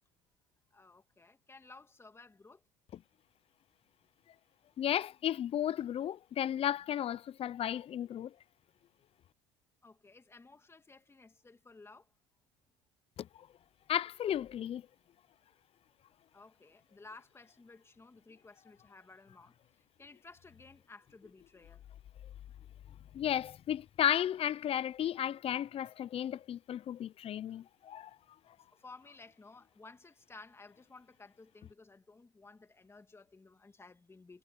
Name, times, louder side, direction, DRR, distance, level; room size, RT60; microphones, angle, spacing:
voice 1, 0.7-2.6 9.8-12.1 16.3-21.8 28.6-34.4, left 3 dB, 20° left, 2.3 m, -56 dB
voice 2, 4.8-8.3 13.2-13.3 13.9-14.8 23.1-28.1, left 10 dB, 45° left, 0.7 m, -34 dB
supercardioid pair, 95°, 14 cm